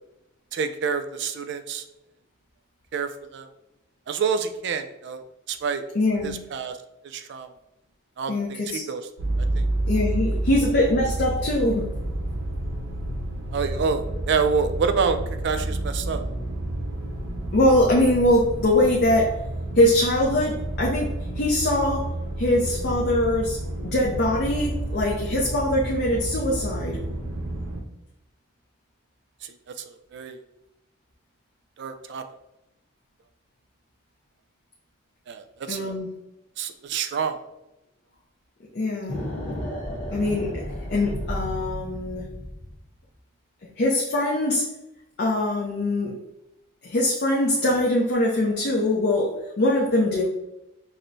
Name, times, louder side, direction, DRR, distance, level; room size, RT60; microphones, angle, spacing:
voice 1, 0.5-1.8 2.9-3.5 4.1-5.8 6.2-6.8 7.0-7.5 8.2-9.0 9.4-9.6 13.5-15.2 15.4-16.2 29.4-30.4 31.8-32.2 35.3-35.9 36.6-37.4, right 5 dB, 55° right, 8 dB, 0.3 m, -28 dB
voice 2, 5.9-6.4 8.3-8.8 9.8-11.9 17.5-19.4 19.8-22.1 22.4-27.0 35.7-36.1 38.7-39.2 40.1-40.6 40.9-42.3 43.8-44.7 45.2-46.1 46.8-50.2, left 1 dB, 50° left, -3 dB, 0.5 m, -22 dB
sound 1, 9.2-27.8, right 1 dB, 80° right, 0.7 m, -30 dB
sound 2, 39.1-42.8, equal, 25° left, 1.1 m, -33 dB
6.0 x 2.1 x 2.6 m, 0.89 s
head